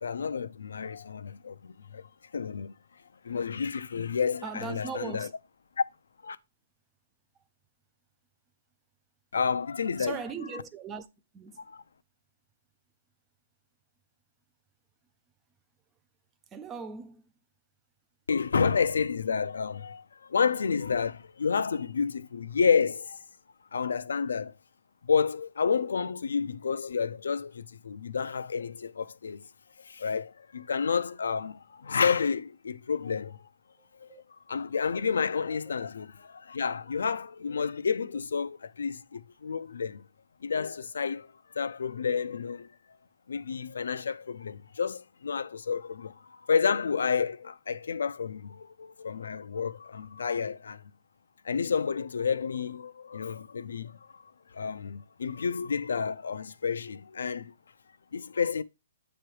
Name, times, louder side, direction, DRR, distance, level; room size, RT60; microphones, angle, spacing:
voice 1, 0.0-2.7 3.2-5.3 5.8-5.9 6.2-6.4 9.3-10.2 11.7-11.8 18.3-23.2 23.7-24.5 25.0-29.5 29.8-33.5 34.0-34.1 34.5-40.0 40.4-41.3 41.5-42.7 43.3-46.2 46.5-50.8 51.4-54.2 54.5-57.5 58.1-58.6, left 6 dB, 75° left, 0.5 m, -30 dB
voice 2, 4.4-5.3 10.0-11.1 11.3-11.6 16.5-17.3 34.1-34.2 35.0-35.2 35.7-35.9, right 5 dB, 10° right, 0.4 m, -39 dB
7.9 x 3.1 x 4.7 m
hypercardioid pair, 170°, 0 cm